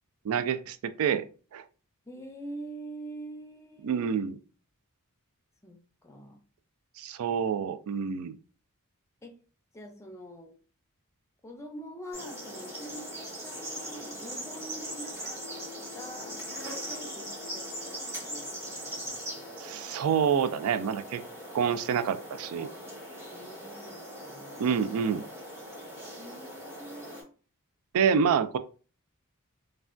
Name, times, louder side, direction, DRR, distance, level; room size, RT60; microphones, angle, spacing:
voice 1, 0.2-1.3 1.5-1.6 3.8-4.4 7.0-8.4 19.6-21.2 21.5-22.7 24.6-25.2 27.9-28.6, right 7 dB, 70° right, 12 dB, 0.3 m, -27 dB
voice 2, 2.1-4.0 5.6-6.4 9.2-9.4 9.7-10.5 11.4-15.5 15.9-16.4 16.7-18.5 18.8-19.8 21.5-21.7 22.6-22.7 23.3-24.8 26.2-27.3, right 1 dB, 15° left, 3 dB, 0.5 m, -45 dB
sound 1, 12.1-27.2, equal, 10° right, 0.9 m, -40 dB
3.2 x 2.2 x 2.4 m, 0.37 s
head